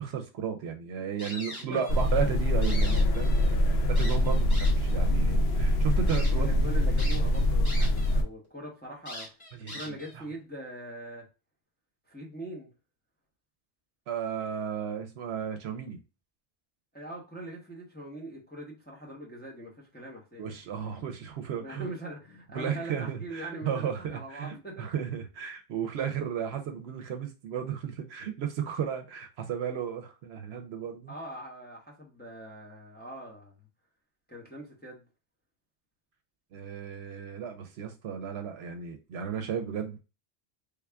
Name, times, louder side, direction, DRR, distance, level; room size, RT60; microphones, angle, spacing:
voice 1, 0.0-3.6 3.9-6.5 6.9-7.0 9.6-10.2 14.1-16.0 20.4-21.9 22.5-31.1 36.5-40.0, right 8 dB, 80° right, 0.8 m, -34 dB
sound 1, 1.2-2.1 2.5-3.5 4.0-4.9 5.5-5.6 6.1-6.3 7.0-8.1 8.4-8.5 9.1-10.2, left 1 dB, 40° left, 1.2 m, -42 dB
voice 2, 1.5-1.8 6.3-9.3 9.7-11.2 12.1-12.7 16.9-20.8 21.6-24.9 31.1-33.5 34.3-35.0, right 1 dB, 10° left, 0.8 m, -42 dB
sound 2, 1.9-8.2, left 1 dB, 75° left, 0.8 m, -24 dB
3.5 x 2.4 x 3.3 m
omnidirectional pair, 1.1 m